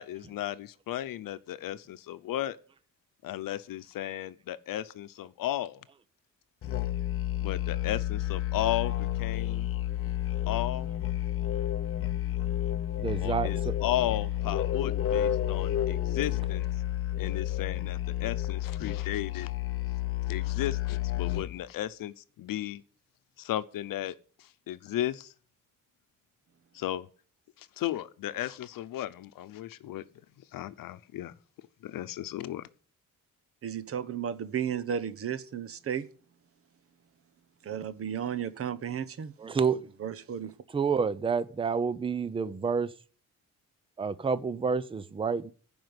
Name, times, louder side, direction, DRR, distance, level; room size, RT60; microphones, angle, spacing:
voice 1, 0.0-2.6 3.2-5.8 7.4-9.7 10.5-10.9 13.2-16.7 17.2-19.5 20.3-22.8 23.4-24.1 24.7-25.3 26.7-27.1 27.8-30.0 30.5-31.3 31.8-32.7, left 13 dB, 85° left, 0.8 m, -34 dB
Musical instrument, 6.6-21.6, left 12 dB, 40° left, 0.7 m, -30 dB
voice 2, 13.0-13.7 39.4-39.9 40.7-42.9 44.0-45.5, right 5 dB, 15° right, 0.5 m, -29 dB
voice 3, 33.6-36.1 37.6-39.3 40.0-40.5, right 8 dB, 45° right, 0.9 m, -33 dB
15.5 x 5.3 x 8.0 m
wide cardioid pair, 160°, 33 cm